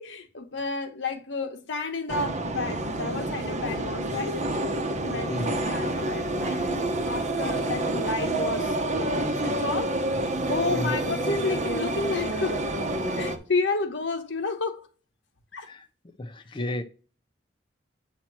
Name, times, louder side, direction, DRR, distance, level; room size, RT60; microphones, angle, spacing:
voice 1, 0.0-4.4 5.0-9.9 10.5-12.6 13.2-14.8 15.5-15.7, left 3 dB, 80° left, 1.1 m, -31 dB
sound 1, 2.1-13.4, right 2 dB, 40° right, 0.9 m, -28 dB
voice 2, 5.3-5.6 10.7-10.9 15.7-15.8 16.2-16.8, left 1 dB, 25° left, 0.5 m, -32 dB
8.2 x 2.9 x 5.9 m
head